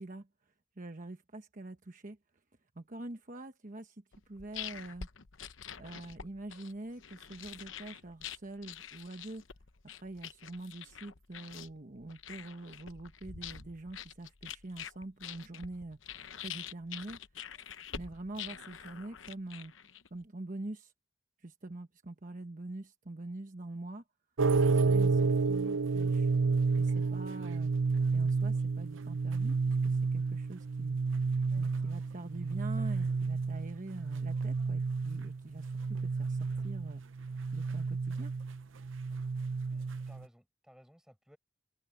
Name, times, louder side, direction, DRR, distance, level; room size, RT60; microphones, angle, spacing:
voice 1, 0.0-2.2 2.7-5.1 5.8-9.4 10.0-16.0 16.3-17.6 17.9-19.7 20.1-20.9 21.4-24.0 24.6-26.3 26.8-31.0 31.6-37.0 37.5-38.3, right 2 dB, 40° right, 1.1 m, -45 dB
sound 1, 4.1-20.2, left 8 dB, 85° left, 0.9 m, -46 dB
sound 2, 24.4-40.2, right 4 dB, 90° right, 0.7 m, -31 dB
voice 2, 39.7-41.4, equal, 5° right, 5.2 m, -59 dB
open air
head